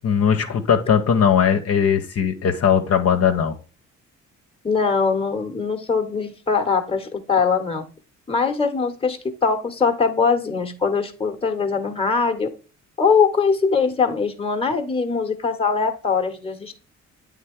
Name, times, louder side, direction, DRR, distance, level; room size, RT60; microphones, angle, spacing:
voice 1, 0.0-3.5, left 7 dB, 55° left, 5 dB, 1.0 m, -19 dB
voice 2, 4.6-7.8 8.3-12.5 13.0-16.7, left 5 dB, 20° left, 5 dB, 1.2 m, -22 dB
8.7 x 3.7 x 3.6 m, 0.37 s
cardioid pair, 90°, 30 cm